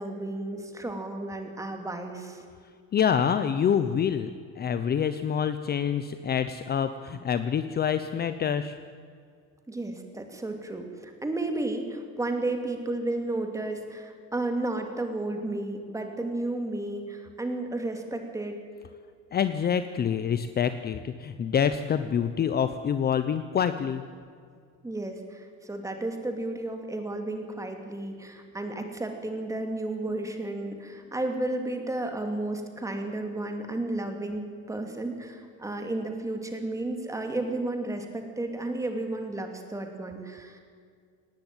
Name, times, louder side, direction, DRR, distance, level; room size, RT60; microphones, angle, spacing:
voice 1, 0.0-2.4 9.7-18.6 24.8-40.6, right 2 dB, 10° right, 4 dB, 2.6 m, -33 dB
voice 2, 2.9-8.8 19.3-24.0, left 8 dB, 30° left, 11 dB, 0.7 m, -26 dB
19.0 x 18.0 x 9.0 m, 2.2 s
cardioid pair, 155°, 31 cm